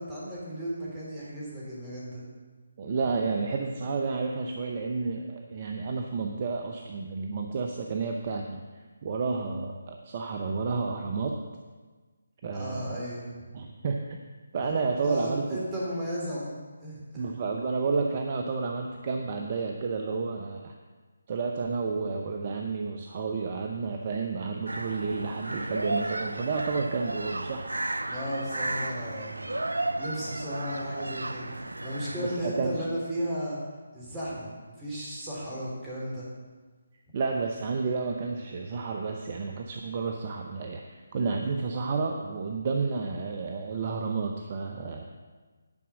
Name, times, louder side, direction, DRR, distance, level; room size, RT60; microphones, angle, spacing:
voice 1, 0.0-2.2 12.5-13.5 14.6-17.2 28.1-29.6 30.0-33.6 33.9-34.5 34.8-36.2, equal, 15° right, -7 dB, 3.5 m, -35 dB
voice 2, 2.8-11.4 12.4-13.0 13.5-14.2 14.5-15.6 17.2-20.7 21.3-27.7 32.2-32.8 37.1-45.0, right 4 dB, 35° right, 3 dB, 0.8 m, -31 dB
sound 1, 24.7-32.4, right 2 dB, 80° right, 0.6 m, -33 dB
10.5 x 6.0 x 6.3 m, 1.4 s
figure-of-eight pair, 150°, 0 cm